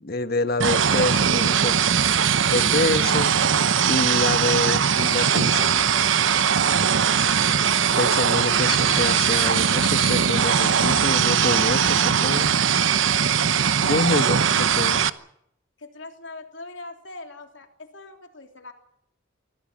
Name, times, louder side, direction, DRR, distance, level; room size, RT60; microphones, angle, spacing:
voice 1, 0.0-1.8 2.4-3.3 3.9-5.7 7.9-12.5 13.8-15.0, left 2 dB, 50° left, 1.3 m, -26 dB
sound 1, 0.6-15.1, right 7 dB, 85° right, 0.9 m, -20 dB
voice 2, 5.3-7.3 13.8-15.0 15.8-18.7, left 3 dB, 75° left, 3.3 m, -41 dB
24.5 x 16.0 x 7.4 m
head